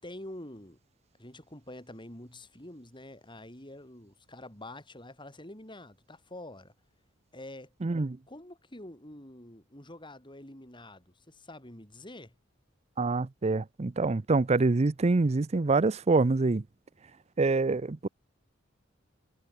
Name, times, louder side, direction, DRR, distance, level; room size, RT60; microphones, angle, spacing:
voice 1, 0.0-0.8 1.2-6.7 7.3-7.7 8.3-12.3, left 1 dB, 25° left, 6.2 m, -46 dB
voice 2, 7.8-8.2 13.0-16.6 17.4-18.1, right 3 dB, 35° right, 0.5 m, -26 dB
head